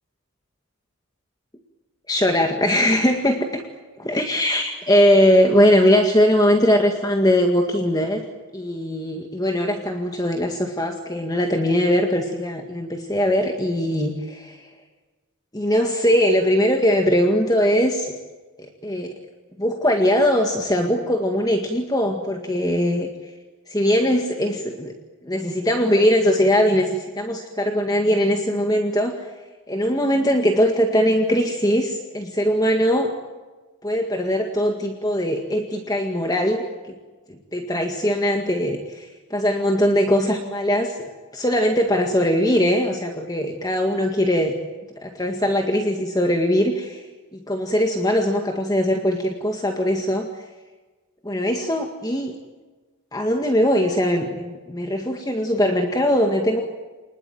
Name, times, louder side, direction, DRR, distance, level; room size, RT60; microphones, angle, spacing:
voice 1, 2.1-3.6 4.1-8.2 8.5-14.7 15.5-18.1 18.8-19.1 19.6-23.1 23.7-24.9 25.2-29.1 29.7-33.1 33.8-36.9 37.5-41.0 41.3-44.5 45.0-47.0 47.3-50.3 51.2-52.4 53.1-56.6, equal, 15° left, 3 dB, 1.9 m, -20 dB
29.0 x 20.5 x 9.2 m, 1.3 s
head